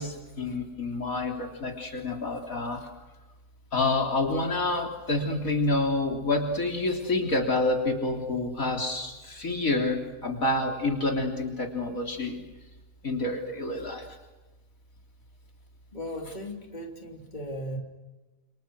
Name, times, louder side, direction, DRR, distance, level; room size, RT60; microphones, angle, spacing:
voice 1, 0.0-2.9 3.7-12.4 13.0-14.2, left 2 dB, 60° left, 2 dB, 3.9 m, -28 dB
voice 2, 15.9-17.8, equal, 30° left, 2 dB, 3.5 m, -37 dB
29.0 x 28.5 x 6.4 m, 1.1 s
omnidirectional pair, 1.6 m